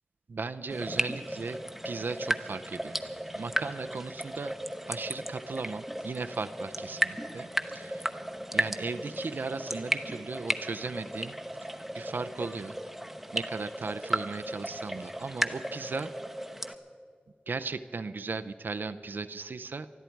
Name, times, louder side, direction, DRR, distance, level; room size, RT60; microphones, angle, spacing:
voice 1, 0.3-1.6 1.8-3.0 3.3-4.5 4.9-8.2 8.5-11.7 11.9-12.8 13.3-16.1 17.5-19.9, right 4 dB, 75° right, 10 dB, 0.5 m, -37 dB
sound 1, 0.7-16.7, right 1 dB, 5° right, 0.8 m, -35 dB
20.0 x 13.5 x 4.6 m, 2.2 s
wide cardioid pair, 85°, 3 cm